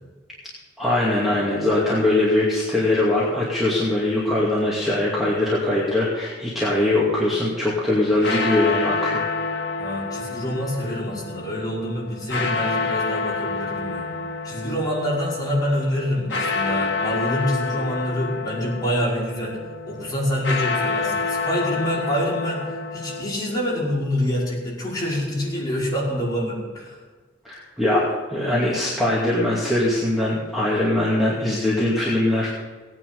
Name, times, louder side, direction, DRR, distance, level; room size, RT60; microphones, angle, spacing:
voice 1, 0.8-9.2 27.4-32.5, left 1 dB, ahead, -7 dB, 2.3 m, -21 dB
sound 1, 7.9-23.2, left 4 dB, 65° left, 1.9 m, -28 dB
voice 2, 9.8-14.1 14.4-19.6 19.9-27.0, equal, 20° left, -7 dB, 5.6 m, -26 dB
17.5 x 9.8 x 5.4 m, 1.4 s
head